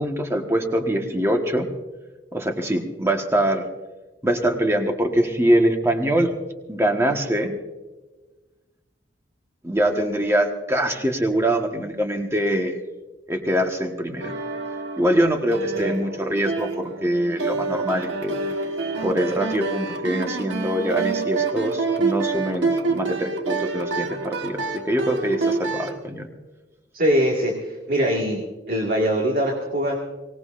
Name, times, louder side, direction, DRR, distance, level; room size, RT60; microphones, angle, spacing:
voice 1, 0.0-1.7 2.3-3.7 4.2-6.3 6.7-7.5 9.6-12.8 13.3-14.3 15.0-18.3 19.0-26.3, right 1 dB, 15° right, 3 dB, 1.4 m, -23 dB
sound 1, 14.2-26.0, right 4 dB, 75° right, 1.4 m, -27 dB
voice 2, 26.9-30.0, equal, 50° right, -1 dB, 1.9 m, -22 dB
24.0 x 18.5 x 2.6 m, 1.2 s
head